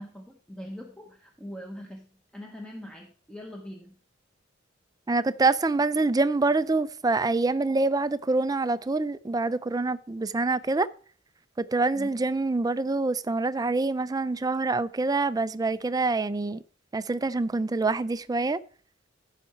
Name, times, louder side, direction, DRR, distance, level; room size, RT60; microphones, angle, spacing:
voice 1, 0.0-4.0 11.9-12.1, equal, 5° left, 0.9 m, -42 dB
voice 2, 5.1-10.9 11.6-16.6 16.9-18.6, right 3 dB, 20° right, 0.4 m, -26 dB
14.5 x 5.7 x 4.4 m
head